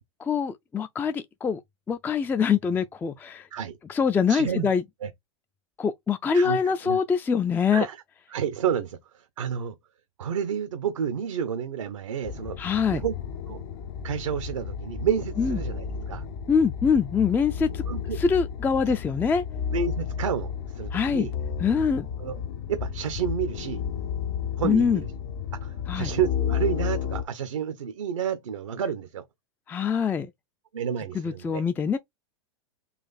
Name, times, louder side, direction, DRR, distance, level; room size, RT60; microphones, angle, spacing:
voice 1, 0.2-1.6 1.9-3.5 3.9-4.8 5.8-7.9 12.6-13.0 15.4-15.6 16.5-17.8 18.1-19.4 20.9-21.3 21.6-22.1 24.6-25.0 25.9-26.1 29.7-30.3 31.1-32.0, left 6 dB, 10° left, 0.3 m, -24 dB
voice 2, 4.3-4.7 5.0-5.1 6.3-6.6 6.8-7.0 7.7-8.0 8.3-9.8 10.2-12.6 12.9-13.1 13.5-13.6 14.0-16.2 17.9-18.2 18.9-19.0 19.7-21.3 22.2-22.4 22.7-23.8 24.6-25.1 25.5-29.2 30.7-31.6, right 8 dB, 80° right, 0.7 m, -30 dB
sound 1, 12.2-27.2, left 7 dB, 55° left, 0.7 m, -32 dB
4.0 x 2.5 x 4.0 m
hypercardioid pair, 100°, 16 cm